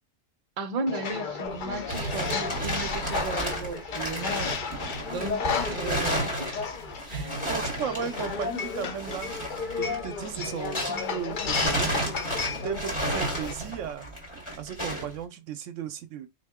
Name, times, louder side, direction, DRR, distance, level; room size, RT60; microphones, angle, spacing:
voice 1, 0.6-4.8 5.1-6.6 7.1-7.3, right 3 dB, 40° right, 0.6 m, -35 dB
sound 1, 0.9-13.5, left 5 dB, 50° left, 0.6 m, -33 dB
sound 2, 1.5-11.1 11.4-15.1, right 1 dB, 20° left, 1.7 m, -32 dB
voice 2, 7.5-9.3 9.8-12.1 12.6-14.1 14.6-16.3, right 8 dB, 75° right, 0.9 m, -35 dB
4.4 x 2.7 x 3.5 m
omnidirectional pair, 1.4 m